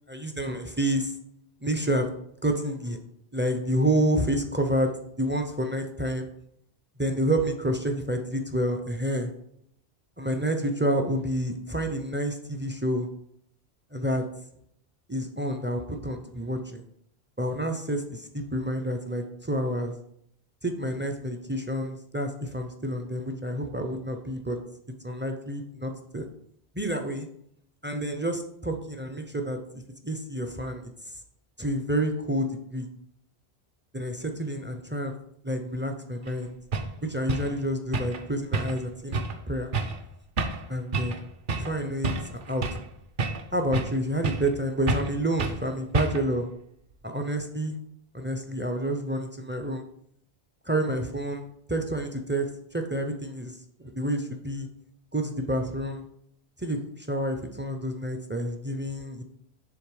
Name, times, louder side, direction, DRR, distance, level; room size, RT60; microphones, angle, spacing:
voice 1, 0.1-1.1 1.6-2.1 2.4-3.0 3.3-4.9 5.2-6.3 7.0-9.3 10.2-13.1 13.9-14.2 15.1-16.8 17.4-19.9 20.6-24.6 25.0-26.2 26.8-27.3 27.8-30.9 31.6-32.9 33.9-35.1 35.4-36.5 37.0-39.2 39.5-39.7 40.7-41.3 41.6-42.6 43.5-46.5 47.0-47.8 48.1-49.8 50.7-53.5 53.8-54.7 55.1-56.0 56.6-59.2, right 1 dB, 20° right, 5 dB, 0.3 m, -29 dB
sound 1, 36.3-36.4 36.7-36.9 37.3-37.5 37.9-38.2 38.5-38.9 39.1-39.4 39.7-40.0 40.4-40.6 40.9-41.2 41.5-41.7 42.0-42.9 43.2-44.0 44.2-44.5 44.9-45.1 45.4-45.6 45.9-46.3, right 3 dB, 55° right, 0.8 m, -28 dB
7.0 x 3.4 x 4.7 m, 0.72 s
omnidirectional pair, 1.1 m